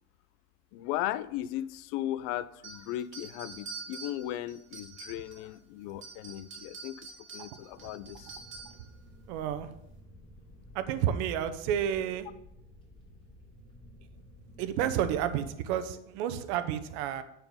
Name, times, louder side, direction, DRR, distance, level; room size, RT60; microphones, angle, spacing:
voice 1, 0.7-8.4, left 13 dB, 65° left, 17 dB, 0.5 m, -37 dB
sound 1, 2.6-5.5 5.9-8.9, right 4 dB, 35° right, 2.3 m, -46 dB
sound 2, 7.7-15.5, left 1 dB, 15° left, 3.3 m, -53 dB
voice 2, 9.3-9.7 10.7-12.3 14.6-17.2, right 10 dB, 75° right, 11 dB, 0.9 m, -30 dB
8.6 x 4.5 x 5.5 m, 0.79 s
supercardioid pair, 120°, 34 cm